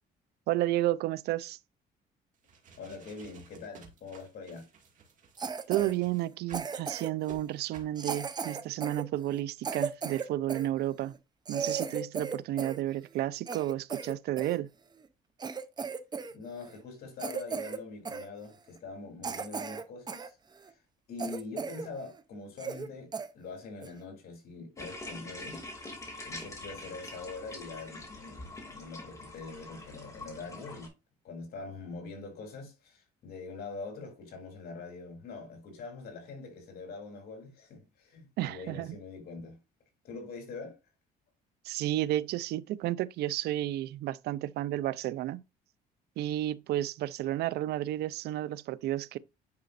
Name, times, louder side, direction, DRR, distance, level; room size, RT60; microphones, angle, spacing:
voice 1, 0.5-1.6 5.7-11.1 11.5-14.7 38.4-39.0 41.6-45.4 46.2-49.2, right 14 dB, 75° right, 0.5 m, -32 dB
sound 1, 2.3-6.7 7.2-7.4 7.7-8.0, right 5 dB, 50° right, 2.1 m, -54 dB
voice 2, 2.8-4.7 16.3-20.4 20.6-20.8 21.1-25.6 26.2-30.9 31.2-39.6 40.0-40.8, left 3 dB, 65° left, 3.0 m, -44 dB
Cough, 5.4-5.9 6.5-7.2 8.0-10.7 11.1-11.2 11.4-12.8 13.1-14.6 15.0-15.1 15.4-16.3 16.6-16.8 17.2-17.8 18.0-18.3 18.8-18.9 19.2-20.3 20.7-20.8 21.2-21.9 22.2-22.3 22.6-22.9 23.1-23.3 23.8-24.0, right 5 dB, 25° right, 0.7 m, -36 dB
sound 2, 24.8-30.9, left 2 dB, 20° left, 2.4 m, -44 dB
9.6 x 5.0 x 2.5 m
cardioid pair, 110°, 17 cm